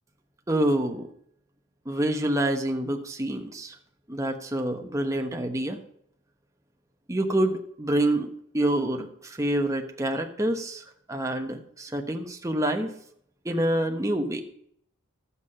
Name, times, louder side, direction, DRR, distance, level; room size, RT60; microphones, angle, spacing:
voice 1, 0.5-1.1 1.9-3.7 4.1-5.8 7.1-8.3 8.5-10.8 11.1-12.9 13.4-14.4, right 1 dB, 15° right, 3 dB, 1.1 m, -27 dB
12.0 x 8.3 x 5.5 m, 0.67 s
head